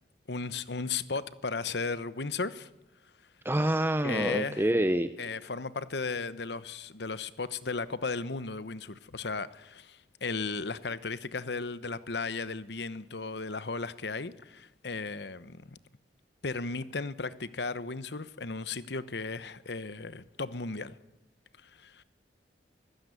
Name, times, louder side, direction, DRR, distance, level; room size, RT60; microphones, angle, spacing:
voice 1, 0.3-2.7 4.0-4.7 5.2-15.7 16.4-21.0 21.6-22.0, left 4 dB, 70° left, 1.0 m, -35 dB
voice 2, 3.4-5.1, right 1 dB, 15° right, 0.8 m, -26 dB
24.0 x 16.0 x 9.7 m
head